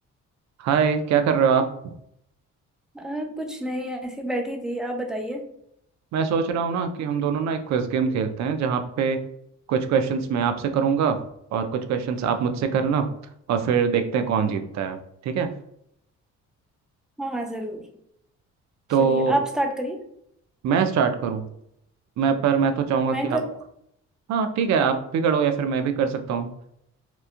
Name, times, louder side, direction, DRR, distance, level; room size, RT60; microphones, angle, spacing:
voice 1, 0.6-1.9 6.1-9.2 9.7-11.2 11.5-13.1 13.5-15.0 15.2-15.5 18.9-19.4 20.6-21.5 22.2-23.4 24.3-26.5, right 6 dB, 65° right, 7 dB, 0.4 m, -23 dB
voice 2, 2.9-5.4 17.2-17.9 19.0-20.0 23.1-23.4, right 1 dB, ahead, 2 dB, 0.4 m, -28 dB
3.0 x 2.2 x 2.4 m, 0.74 s
cardioid pair, 90°, 30 cm